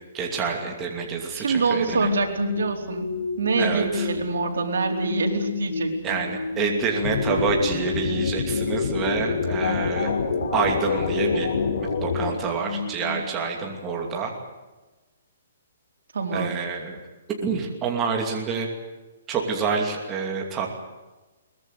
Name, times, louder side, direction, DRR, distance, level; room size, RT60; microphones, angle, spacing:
voice 1, 0.1-2.1 3.6-4.1 6.0-10.1 10.5-14.3 16.3-17.0 17.4-18.7 19.3-20.8, right 5 dB, 15° right, 1 dB, 2.7 m, -27 dB
voice 2, 1.3-3.1 3.4-6.2 16.1-16.6, right 4 dB, 85° right, 3 dB, 4.3 m, -26 dB
sound 1, 1.9-14.0, left 4 dB, 60° left, 3.5 m, -32 dB
sound 2, 7.0-12.3, left 5 dB, 85° left, 4.8 m, -26 dB
22.5 x 20.5 x 8.2 m, 1.1 s
hypercardioid pair, 175°, 0 cm